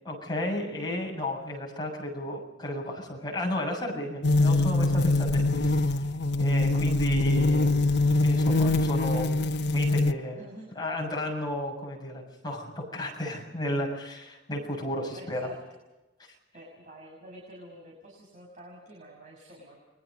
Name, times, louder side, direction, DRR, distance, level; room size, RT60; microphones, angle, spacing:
voice 1, 0.1-5.8 6.4-7.7 8.2-9.3 9.7-10.5 10.8-15.5, left 1 dB, 25° left, -1 dB, 7.0 m, -33 dB
sound 1, 4.2-10.1, left 2 dB, 65° left, 1.1 m, -23 dB
voice 2, 10.3-10.7 15.1-15.5 16.5-19.8, right 1 dB, 40° right, -1 dB, 6.3 m, -48 dB
30.0 x 23.5 x 5.4 m, 1.1 s
head